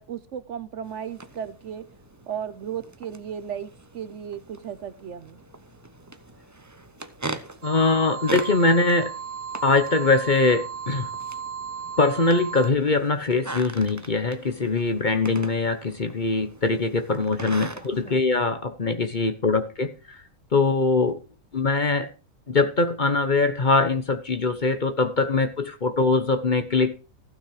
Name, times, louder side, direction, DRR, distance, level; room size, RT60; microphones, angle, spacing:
voice 1, 0.0-1.8 2.3-5.4 18.1-18.3, right 8 dB, 60° right, 0.9 m, -35 dB
sound 1, 0.8-18.2, right 2 dB, 15° right, 0.6 m, -40 dB
voice 2, 7.6-9.1 9.6-11.1 12.0-20.2 20.5-21.2 21.5-22.1 22.5-26.9, left 3 dB, 35° left, 1.0 m, -22 dB
sound 2, 7.6-12.7, right 7 dB, 90° right, 1.3 m, -35 dB
15.0 x 6.5 x 4.9 m
omnidirectional pair, 1.6 m